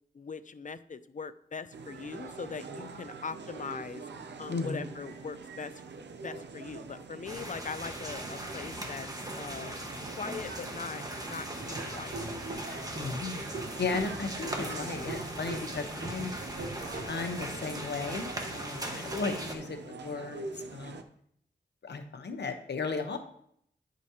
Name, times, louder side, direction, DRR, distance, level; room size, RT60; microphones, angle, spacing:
voice 1, 0.1-4.0 4.4-5.7 6.2-9.1 9.4-9.8 10.2-12.3, left 5 dB, 45° left, 13 dB, 0.5 m, -41 dB
sound 1, 1.7-21.0, right 4 dB, 90° right, 0.6 m, -44 dB
voice 2, 4.5-4.9 12.9-13.4 13.8-16.3 17.1-21.0 21.8-23.2, left 4 dB, 80° left, 6 dB, 0.9 m, -35 dB
sound 2, 7.2-19.5, right 1 dB, 20° right, 1.3 m, -39 dB
Laughter / Drum, 11.5-17.5, right 2 dB, 70° right, 1.2 m, -43 dB
10.0 x 5.1 x 2.8 m, 0.68 s
cardioid pair, 45°, 18 cm